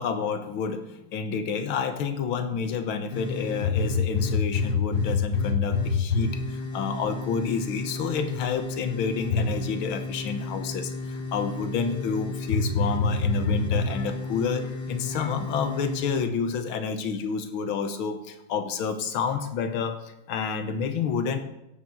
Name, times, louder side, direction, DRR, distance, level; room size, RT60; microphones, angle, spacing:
voice 1, 0.0-21.4, left 6 dB, 80° left, 7 dB, 1.9 m, -29 dB
sound 1, 3.1-16.2, left 4 dB, 55° left, 1.8 m, -29 dB
16.5 x 7.1 x 7.8 m, 0.87 s
omnidirectional pair, 2.2 m